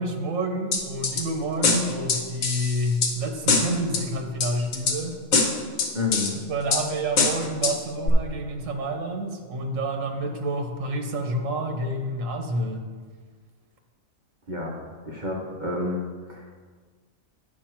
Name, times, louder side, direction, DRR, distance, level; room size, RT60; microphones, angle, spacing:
voice 1, 0.0-5.2 6.5-12.8, right 1 dB, 75° right, 4 dB, 1.4 m, -28 dB
sound 1, 0.7-1.2 1.6-3.1 3.5-4.0 4.4-5.0 5.3-6.3 6.7-6.8 7.2-7.7 8.1-8.2, left 4 dB, 85° left, 1.5 m, -23 dB
voice 2, 5.9-6.3 14.5-14.7 15.0-16.0 16.3-16.6, left 3 dB, 40° right, -2 dB, 1.1 m, -29 dB
9.5 x 6.4 x 4.5 m, 1.5 s
omnidirectional pair, 1.4 m